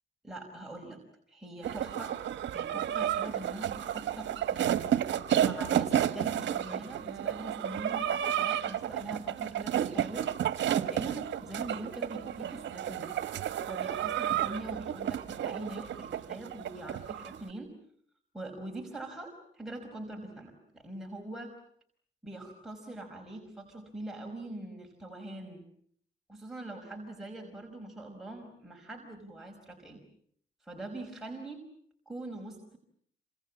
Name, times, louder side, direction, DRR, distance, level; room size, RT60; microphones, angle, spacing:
voice 1, 0.2-1.0 1.3-2.1 2.5-4.7 5.4-10.3 10.7-13.1 13.6-17.7 18.3-21.5 22.2-25.6 26.3-30.0 30.6-31.6 32.0-32.8, right 2 dB, ahead, 0 dB, 5.2 m, -43 dB
sound 1, 1.6-17.4, right 10 dB, 65° right, 1.4 m, -31 dB
28.0 x 26.0 x 7.4 m, 0.64 s
cardioid pair, 90°, 20 cm